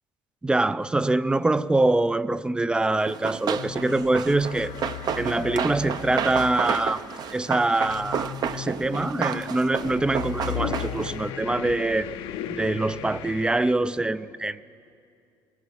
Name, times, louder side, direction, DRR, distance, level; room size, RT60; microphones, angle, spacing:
voice 1, 0.4-4.7 5.2-7.0 7.3-12.1 12.5-14.6, right 2 dB, 10° right, 16 dB, 0.4 m, -24 dB
Run, 3.1-11.2, right 8 dB, 50° right, 0.7 m, -31 dB
sound 1, 3.5-13.7, left 10 dB, 75° left, 0.8 m, -36 dB
21.5 x 16.0 x 8.5 m, 2.5 s
cardioid pair, 125°, 9 cm